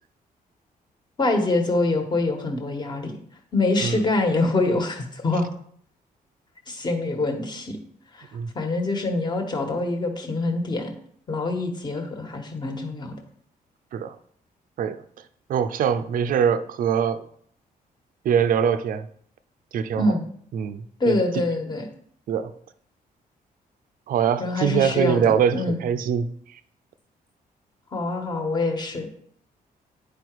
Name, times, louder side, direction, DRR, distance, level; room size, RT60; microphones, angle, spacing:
voice 1, 1.2-3.1 3.5-5.5 6.7-7.8 8.1-8.3 8.5-10.9 11.3-13.2 19.9-20.2 21.0-21.8 24.4-25.8 27.9-29.1, left 2 dB, 30° left, 4 dB, 1.4 m, -25 dB
voice 2, 15.5-17.3 18.2-19.1 19.7-20.1 20.5-21.2 22.3-22.5 24.1-26.6, right 8 dB, 65° right, 11 dB, 0.5 m, -23 dB
9.8 x 5.0 x 4.6 m, 0.63 s
cardioid pair, 150°, 15 cm